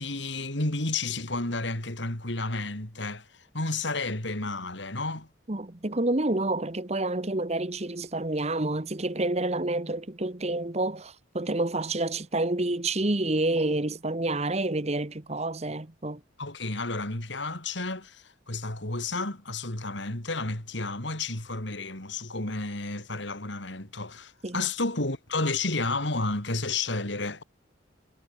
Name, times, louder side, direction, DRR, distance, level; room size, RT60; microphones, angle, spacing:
voice 1, 0.0-5.3 16.4-27.4, left 3 dB, 65° left, 3.8 m, -31 dB
voice 2, 5.5-16.2 24.4-24.6, right 2 dB, 35° right, 1.3 m, -28 dB
head